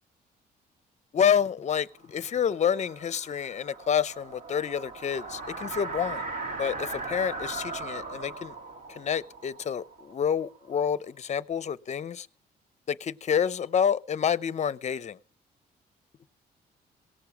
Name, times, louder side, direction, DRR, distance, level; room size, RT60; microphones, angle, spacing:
voice 1, 1.1-6.2 6.6-8.6 8.9-12.3 12.9-15.2, left 8 dB, 45° left, 0.7 m, -28 dB
sound 1, 2.1-10.8, right 3 dB, 55° right, 2.2 m, -39 dB
18.0 x 6.8 x 5.9 m
cardioid pair, 95°, 17 cm